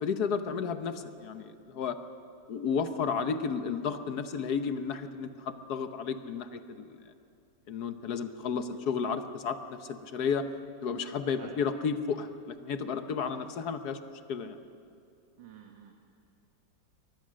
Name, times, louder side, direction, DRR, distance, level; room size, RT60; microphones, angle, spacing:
voice 1, 0.0-2.0 2.5-7.0 7.7-10.5 10.8-14.0 14.3-14.6, left 6 dB, 60° left, 9 dB, 1.4 m, -32 dB
voice 2, 15.4-15.9, right 8 dB, 80° right, 2 dB, 2.0 m, -49 dB
24.0 x 19.0 x 6.4 m, 2.6 s
omnidirectional pair, 2.0 m